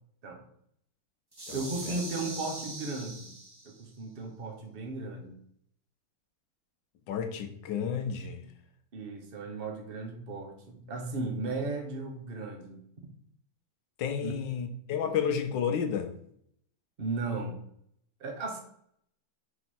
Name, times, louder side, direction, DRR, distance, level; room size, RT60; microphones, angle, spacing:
sound 1, 1.3-3.9, right 2 dB, 20° right, 0.6 m, -42 dB
voice 1, 1.5-3.3 3.6-5.4 8.9-12.8 14.2-14.3 17.0-17.6 18.2-18.6, right 3 dB, 35° right, 3 dB, 1.0 m, -36 dB
voice 2, 7.1-8.5 14.0-16.1, left 7 dB, 70° left, 7 dB, 1.3 m, -31 dB
4.8 x 4.6 x 4.4 m, 0.68 s
omnidirectional pair, 2.2 m